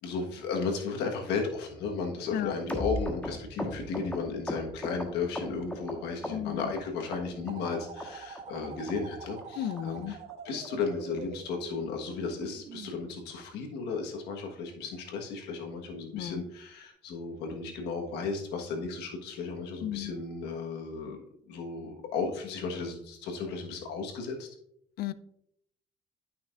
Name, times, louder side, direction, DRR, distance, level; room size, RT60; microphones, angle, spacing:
voice 1, 0.0-10.2 10.4-21.2 21.5-24.5, left 4 dB, 85° left, 3 dB, 1.4 m, -34 dB
sound 1, 2.7-5.9 6.2-6.8 7.1-7.7 8.0-8.1 8.3-8.6 8.9-9.0 9.2-9.4 9.8-9.9 10.1-10.3 10.6-10.7 11.0-11.2 11.5-11.6 11.9-12.1 12.4-12.5, left 1 dB, 10° left, 1.3 m, -36 dB
voice 2, 6.3-6.7 9.6-10.2 16.1-16.4 19.8-20.1 25.0-25.1, left 11 dB, 65° left, 16 dB, 0.5 m, -34 dB
sound 2, 7.5-12.9, right 6 dB, 40° right, 0.5 m, -45 dB
11.5 x 5.8 x 2.5 m, 0.73 s
cardioid pair, 110°, 17 cm